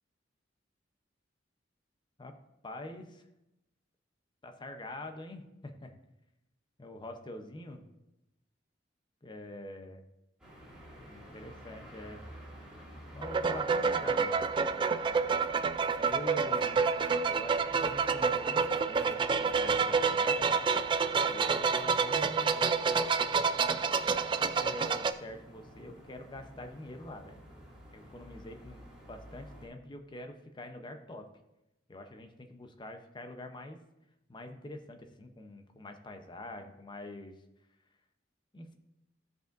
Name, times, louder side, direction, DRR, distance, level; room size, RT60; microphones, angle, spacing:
voice 1, 2.6-3.2 4.4-6.0 6.8-7.8 9.2-10.0 11.0-12.3 13.1-14.5 16.0-16.8 17.3-20.5 21.2-22.6 24.5-27.4 27.9-31.3 31.9-33.8 34.3-37.3 38.5-38.7, left 1 dB, 25° left, 6 dB, 0.7 m, -45 dB
sound 1, 10.4-29.7, equal, 5° right, 2.2 m, -52 dB
sound 2, 13.2-25.1, right 5 dB, 25° right, 0.3 m, -28 dB
15.0 x 5.3 x 2.6 m, 0.90 s
head